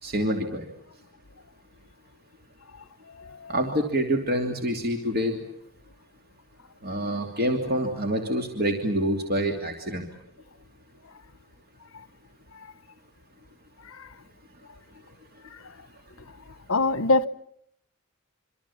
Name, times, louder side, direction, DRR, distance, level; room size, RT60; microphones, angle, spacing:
voice 1, 0.0-0.7 3.5-5.4 6.8-10.1, equal, 45° right, 2.9 m, -26 dB
voice 2, 16.7-17.3, left 2 dB, 70° left, 1.0 m, -22 dB
27.0 x 26.0 x 7.1 m
head